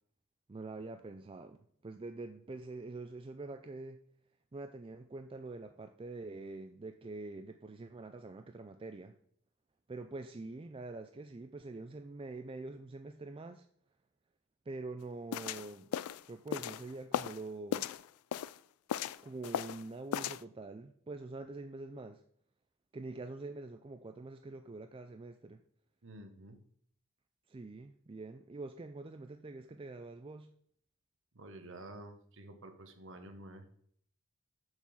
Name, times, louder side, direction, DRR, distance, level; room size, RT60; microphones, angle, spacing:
voice 1, 0.5-1.6 1.8-4.0 4.5-9.2 9.9-13.7 14.7-15.9 16.3-17.9 19.2-22.2 22.9-25.6 27.5-30.5, right 3 dB, 25° right, 7 dB, 0.3 m, -45 dB
sound 1, 15.3-17.4 17.7-18.6 18.9-19.8 20.1-20.4, left 9 dB, 75° left, 0.3 m, -37 dB
voice 2, 26.0-26.6 31.3-33.6, right 1 dB, 60° right, 7 dB, 1.2 m, -50 dB
6.2 x 6.0 x 7.1 m, 0.64 s
head